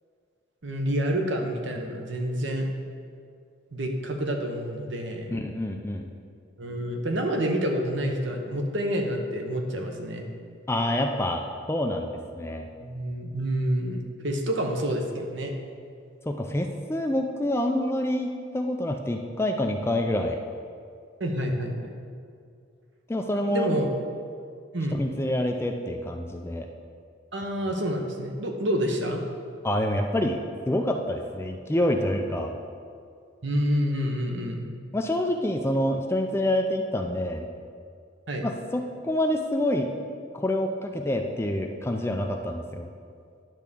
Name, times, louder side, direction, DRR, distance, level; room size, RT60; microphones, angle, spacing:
voice 1, 0.6-2.7 3.7-5.4 6.6-10.2 12.8-15.5 21.2-21.9 23.5-23.9 24.7-25.0 27.3-29.2 33.4-34.6 38.3-38.4, equal, 65° right, 2 dB, 1.0 m, -28 dB
voice 2, 5.3-6.1 10.7-12.7 16.3-20.4 23.1-23.7 25.0-26.7 29.6-30.4 30.7-32.5 34.9-37.5 38.4-39.9 40.3-42.9, left 1 dB, 10° left, 4 dB, 0.4 m, -27 dB
10.5 x 3.6 x 6.9 m, 2.3 s
head